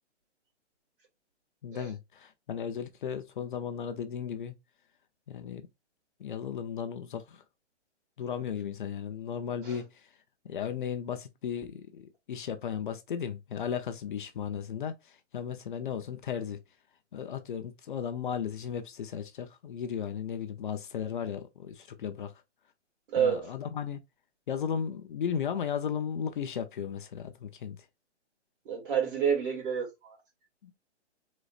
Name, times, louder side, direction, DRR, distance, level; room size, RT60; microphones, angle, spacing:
voice 1, 1.6-4.5 5.3-5.7 6.2-7.4 8.2-10.1 10.4-16.6 17.1-22.3 23.2-24.0 24.5-27.8 30.6-30.7, left 8 dB, 45° left, 0.7 m, -35 dB
voice 2, 23.1-23.5 28.7-30.2, right 7 dB, 45° right, 2.5 m, -29 dB
4.6 x 4.1 x 2.4 m
hypercardioid pair, 165°, 35 cm